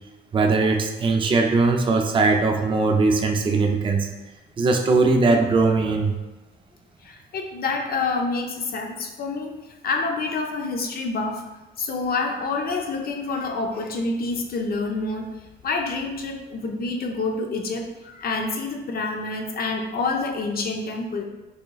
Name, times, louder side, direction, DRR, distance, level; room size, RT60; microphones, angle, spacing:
voice 1, 0.3-4.1 4.6-6.1, right 3 dB, 25° right, 3 dB, 0.4 m, -20 dB
voice 2, 7.0-9.5 9.8-11.4 11.8-15.3 15.6-21.3, left 3 dB, 50° left, 3 dB, 0.6 m, -27 dB
4.8 x 2.9 x 2.3 m, 1.1 s
cardioid pair, 90°, 20 cm